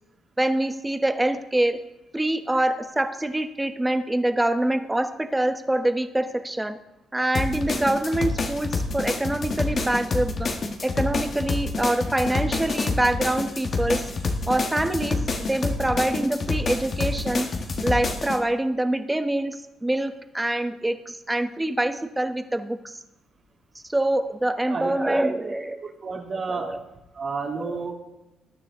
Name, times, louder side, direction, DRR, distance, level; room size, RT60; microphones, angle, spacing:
voice 1, 0.4-1.8 2.1-6.8 7.1-10.5 10.8-14.1 14.5-17.5 17.8-23.0 23.9-25.8 26.5-26.8 27.6-27.8, right 1 dB, 10° right, 8 dB, 1.1 m, -25 dB
sound 1, 7.3-18.4, left 3 dB, 45° left, 1.5 m, -28 dB
voice 2, 24.7-25.5 25.8-26.7 27.1-27.9, right 4 dB, 50° right, -3 dB, 2.8 m, -31 dB
20.0 x 9.2 x 3.7 m, 0.94 s
cardioid pair, 90°, 0 cm